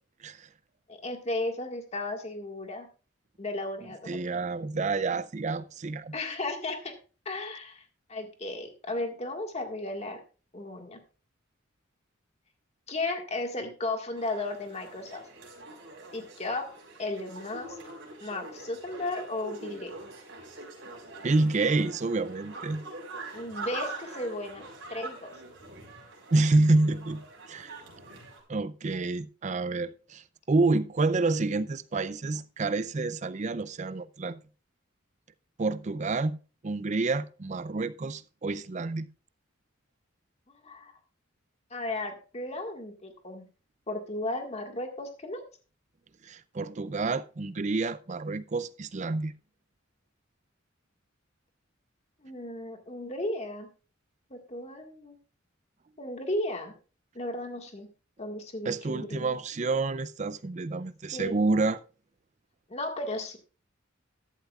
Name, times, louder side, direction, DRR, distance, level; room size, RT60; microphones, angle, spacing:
voice 1, 0.9-2.9 3.4-4.2 6.1-6.9 7.2-10.2 10.5-11.0 12.9-15.2 16.1-16.7 17.0-17.8 18.2-19.9 23.3-25.3 40.6-40.9 41.7-43.5 43.9-45.4 52.2-53.7 54.3-55.2 56.0-56.7 57.1-57.9 58.2-59.3 61.1-61.4 62.7-63.4, left 2 dB, 30° left, 1.8 m, -35 dB
voice 2, 4.1-6.1 21.2-22.8 26.3-27.2 27.5-27.8 28.5-34.4 35.6-36.4 36.6-39.1 46.2-49.3 58.7-61.8, right 3 dB, 35° right, 0.5 m, -28 dB
sound 1, 14.1-28.4, right 2 dB, 65° right, 4.5 m, -44 dB
13.5 x 11.5 x 2.4 m
head